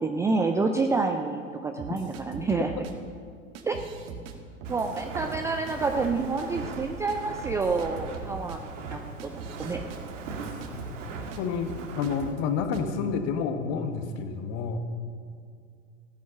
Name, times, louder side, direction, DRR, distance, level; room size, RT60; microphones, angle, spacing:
voice 1, 0.0-2.7 3.7-3.8 4.7-9.8, right 3 dB, 5° right, 5 dB, 0.4 m, -28 dB
sound 1, 1.8-2.9 3.5-4.3 4.6-5.7 6.0-6.8 7.1-7.2 7.4-11.4 11.7-12.4 12.7-12.9, right 5 dB, 45° right, 1.7 m, -41 dB
Walk footsteps, 4.6-12.3, right 4 dB, 65° right, 2.1 m, -40 dB
voice 2, 11.4-14.8, left 6 dB, 40° left, 7 dB, 1.6 m, -29 dB
15.5 x 10.5 x 6.6 m, 2.2 s
figure-of-eight pair, 90°, 40 cm